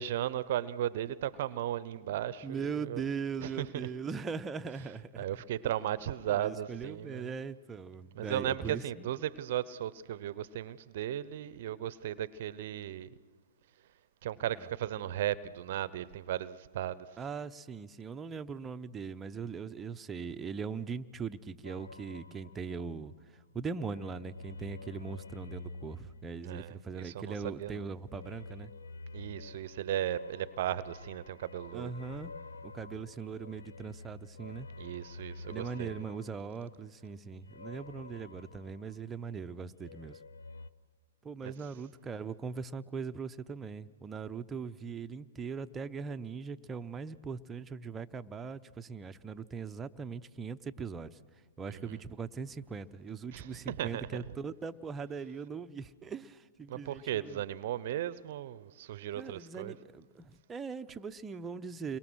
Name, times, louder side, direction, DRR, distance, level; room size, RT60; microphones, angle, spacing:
voice 1, 0.0-3.1 3.4-3.9 5.2-7.3 8.1-13.1 14.2-17.2 26.4-27.8 29.1-31.9 34.8-36.0 41.4-41.5 51.7-52.0 53.3-54.2 56.7-59.8, right 12 dB, 55° right, 0.7 m, -36 dB
voice 2, 2.4-5.3 6.3-9.1 17.2-23.1 23.5-28.7 31.7-32.3 32.6-34.7 35.5-40.2 41.2-51.2 51.6-57.4 59.1-62.0, right 5 dB, 15° right, 0.8 m, -40 dB
sound 1, 21.6-23.3 23.6-27.1 28.0-39.4 39.7-40.7, left 3 dB, 80° left, 0.7 m, -49 dB
29.0 x 23.0 x 6.3 m
hypercardioid pair, 120°, 0 cm